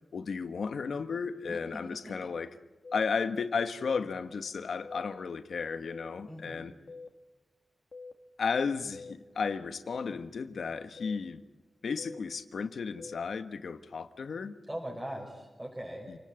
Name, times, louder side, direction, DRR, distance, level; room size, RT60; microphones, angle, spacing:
voice 1, 0.1-2.6 2.9-6.7 8.4-11.4 11.8-14.6 16.1-16.2, left 5 dB, 80° left, 1.3 m, -34 dB
sound 1, 2.8-3.0 3.8-4.0 4.8-5.1 5.9-6.1 6.9-7.1 7.9-8.1 8.9-9.1 9.9-10.1 11.0-11.2 12.0-12.2 13.0-13.2, left 4 dB, 50° left, 2.3 m, -45 dB
voice 2, 6.3-6.6 14.7-16.2, equal, 10° right, 5.5 m, -40 dB
28.5 x 19.0 x 9.0 m
wide cardioid pair, 120°, 0 cm